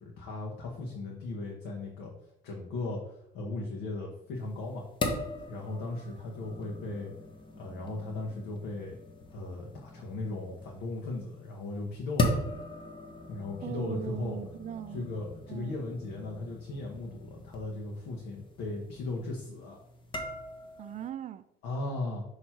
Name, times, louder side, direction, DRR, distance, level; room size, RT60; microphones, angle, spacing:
voice 1, 0.0-2.1 2.4-4.8 5.5-7.1 7.6-9.0 9.3-12.4 13.3-14.4 14.9-19.8 21.6-22.2, left 2 dB, 85° left, 1.2 m, -37 dB
sound 1, 4.4-21.1, left 2 dB, 30° left, 1.0 m, -39 dB
voice 2, 13.6-15.1 15.5-15.7 20.8-21.5, right 10 dB, 45° right, 0.4 m, -39 dB
6.1 x 3.1 x 5.8 m
cardioid pair, 110°, 17 cm